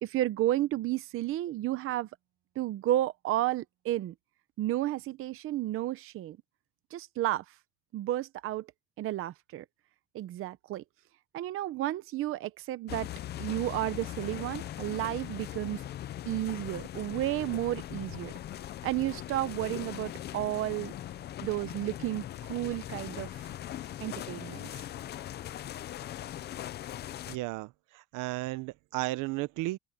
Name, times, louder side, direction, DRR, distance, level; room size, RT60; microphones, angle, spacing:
voice 1, 0.0-2.1 2.6-4.1 4.6-6.4 6.9-7.4 7.9-8.7 9.0-9.6 10.1-10.8 11.3-13.1 13.4-15.8 16.3-18.3 18.8-20.9 21.4-23.3 24.0-24.6, right 14 dB, 45° right, 0.7 m, -32 dB
sound 1, 12.9-27.4, left 12 dB, 35° left, 0.5 m, -40 dB
voice 2, 27.3-29.8, right 20 dB, 75° right, 0.9 m, -34 dB
cardioid pair, 175°, 32 cm